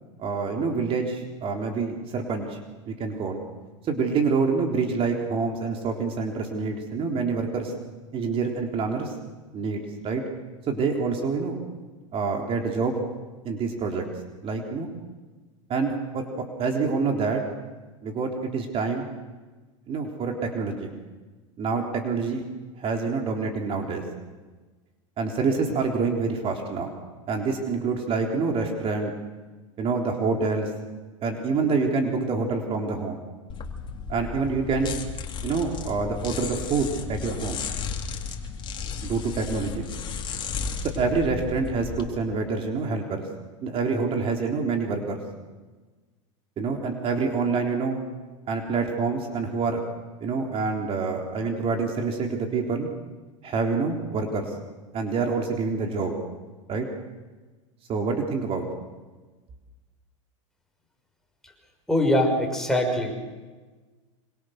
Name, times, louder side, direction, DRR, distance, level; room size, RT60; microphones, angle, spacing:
voice 1, 0.2-2.6 2.9-3.4 3.8-7.7 8.1-9.1 9.5-10.2 10.7-11.6 12.1-13.0 13.4-14.0 14.4-14.9 15.7-16.2 16.6-17.4 18.0-19.1 19.9-20.9 21.6-22.5 22.8-24.0 25.2-26.9 27.3-29.1 29.8-30.7 31.2-33.2 34.1-34.9 35.4-37.6 39.0-39.9 40.8-43.2 43.6-45.2 46.6-48.0 48.5-49.8 50.2-52.9 53.4-54.5 54.9-56.1 56.7-56.9 57.9-58.7, right 4 dB, 35° right, 2 dB, 3.7 m, -26 dB
sound 1, 33.5-42.1, left 5 dB, 30° left, 3.7 m, -34 dB
voice 2, 61.9-63.1, left 1 dB, 5° left, 2 dB, 6.1 m, -22 dB
26.5 x 26.0 x 6.6 m, 1.3 s
hypercardioid pair, 105°, 17 cm